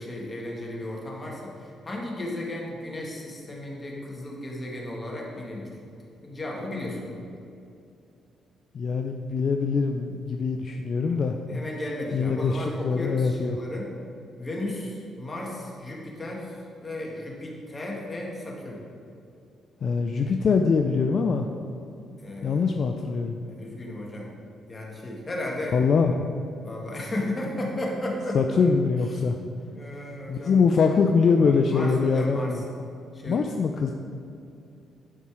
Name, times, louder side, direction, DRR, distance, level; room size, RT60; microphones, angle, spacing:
voice 1, 0.0-5.7 6.2-7.2 11.2-13.9 14.4-18.8 22.2-22.6 23.4-24.3 24.7-25.8 26.6-28.4 29.7-30.6 31.3-32.6 33.1-33.4, left 1 dB, 25° left, -2 dB, 1.9 m, -34 dB
voice 2, 8.7-11.4 12.1-13.6 19.8-21.5 22.4-23.4 25.7-26.2 28.3-29.4 30.3-32.6 33.3-33.9, left 5 dB, 55° left, 4 dB, 0.5 m, -23 dB
11.0 x 4.3 x 4.8 m, 2.6 s
cardioid pair, 90°, 0 cm